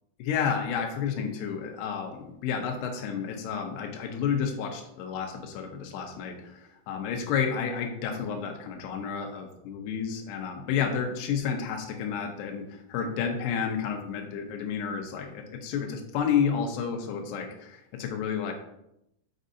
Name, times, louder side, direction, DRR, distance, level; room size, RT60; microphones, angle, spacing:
voice 1, 0.2-18.5, left 7 dB, 80° left, 3 dB, 2.5 m, -31 dB
6.5 x 6.3 x 2.7 m, 0.81 s
omnidirectional pair, 5.4 m